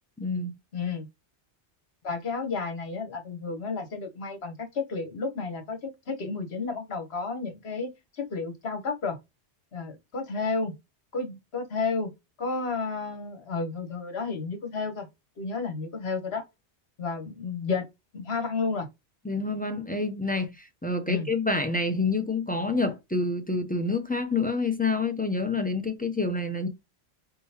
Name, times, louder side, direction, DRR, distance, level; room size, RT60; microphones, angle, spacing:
voice 1, 0.2-0.6 19.2-26.7, left 3 dB, 15° left, 0.4 m, -28 dB
voice 2, 0.7-1.1 2.0-9.2 9.7-10.7 11.1-12.1 12.4-15.1 15.4-16.4 17.0-17.8 18.1-18.9 21.1-21.3, left 4 dB, 65° left, 1.3 m, -31 dB
4.3 x 3.7 x 2.8 m
omnidirectional pair, 1.2 m